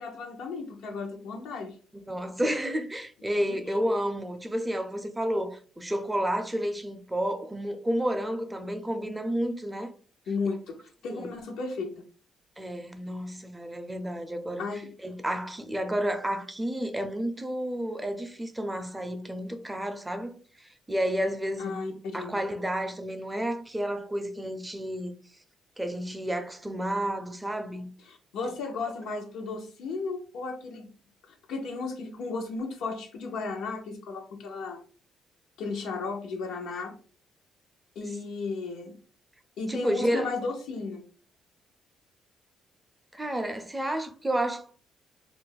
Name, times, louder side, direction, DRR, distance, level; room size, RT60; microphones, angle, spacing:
voice 1, 0.0-1.8 3.4-3.6 10.3-11.9 14.6-14.9 21.6-22.4 28.0-30.9 31.3-34.8 35.6-37.0 38.0-39.0 39.6-41.0, left 4 dB, 85° left, 0.7 m, -34 dB
voice 2, 1.9-9.9 11.1-11.3 12.6-14.7 15.0-21.8 22.1-25.1 25.8-27.9 39.7-40.3 43.1-44.8, equal, 10° right, 0.4 m, -31 dB
2.4 x 2.1 x 3.9 m
cardioid pair, 90°, 0 cm